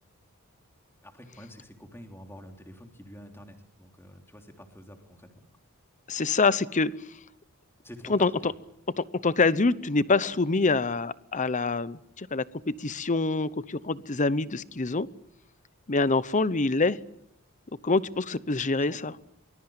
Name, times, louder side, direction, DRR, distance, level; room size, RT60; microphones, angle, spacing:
voice 1, 1.0-5.2 7.8-8.5 18.8-19.2, equal, 10° left, 4 dB, 3.4 m, -47 dB
voice 2, 6.1-6.9 8.1-8.5 9.0-15.1 15.9-17.0 17.8-19.1, left 3 dB, 35° left, 17 dB, 0.8 m, -25 dB
24.0 x 21.0 x 8.9 m, 0.82 s
head